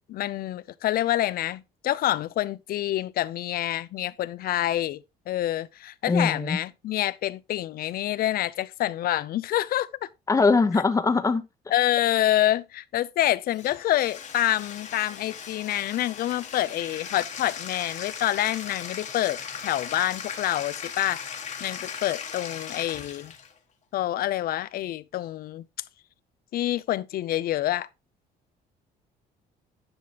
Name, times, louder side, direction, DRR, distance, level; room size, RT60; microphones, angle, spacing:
voice 1, 0.1-10.1 10.7-10.8 11.7-21.2 21.6-23.3 23.9-25.7 26.5-27.9, left 13 dB, 60° left, 0.6 m, -27 dB
voice 2, 6.1-6.6 10.3-11.4, left 4 dB, 20° left, 1.1 m, -21 dB
Bathtub (filling or washing), 13.5-23.5, left 7 dB, 45° left, 1.5 m, -38 dB
10.5 x 5.8 x 2.9 m
cardioid pair, 110°, 17 cm